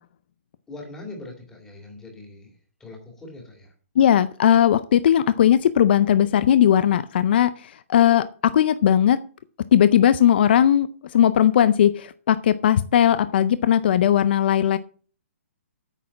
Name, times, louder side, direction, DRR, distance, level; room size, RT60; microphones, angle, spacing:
voice 1, 0.7-3.7, left 2 dB, 5° left, 2 dB, 2.4 m, -41 dB
voice 2, 4.0-9.2 9.7-14.8, left 10 dB, 45° left, 14 dB, 0.5 m, -18 dB
9.1 x 6.3 x 7.0 m, 0.42 s
hypercardioid pair, 165°, 8 cm